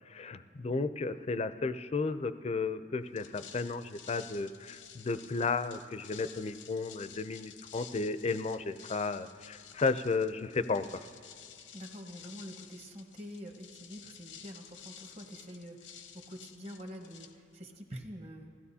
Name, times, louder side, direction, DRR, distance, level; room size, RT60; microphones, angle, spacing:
voice 1, 0.1-11.1, left 4 dB, 35° left, 12 dB, 0.4 m, -33 dB
sound 1, 3.0-17.8, left 8 dB, 90° left, 0.7 m, -53 dB
voice 2, 11.7-18.5, equal, 35° right, 3 dB, 1.2 m, -46 dB
21.0 x 15.0 x 2.8 m, 2.4 s
head